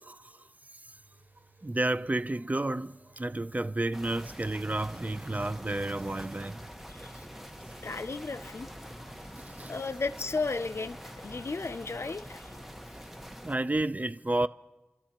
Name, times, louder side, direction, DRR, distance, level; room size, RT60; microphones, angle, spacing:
voice 1, 0.0-0.4 1.6-6.7 7.1-7.3 9.3-9.7 13.4-14.5, right 2 dB, 35° right, 0.4 m, -31 dB
sound 1, 0.9-11.7, right 3 dB, 55° right, 5.7 m, -62 dB
sound 2, 3.9-13.6, equal, 5° right, 1.2 m, -45 dB
voice 2, 6.9-7.2 7.8-9.3 9.6-12.7, left 3 dB, 80° left, 0.4 m, -35 dB
30.0 x 13.0 x 2.9 m
wide cardioid pair, 45°, 4 cm